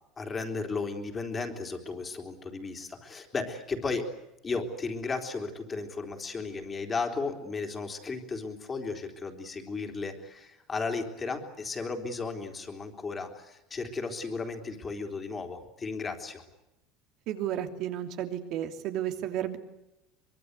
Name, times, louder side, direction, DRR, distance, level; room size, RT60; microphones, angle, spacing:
voice 1, 0.2-4.1 4.4-16.4, left 4 dB, 20° left, 5 dB, 3.8 m, -35 dB
voice 2, 17.3-19.6, right 11 dB, 55° right, 6 dB, 2.9 m, -32 dB
24.5 x 22.5 x 8.3 m, 0.92 s
cardioid pair, 140°, 0 cm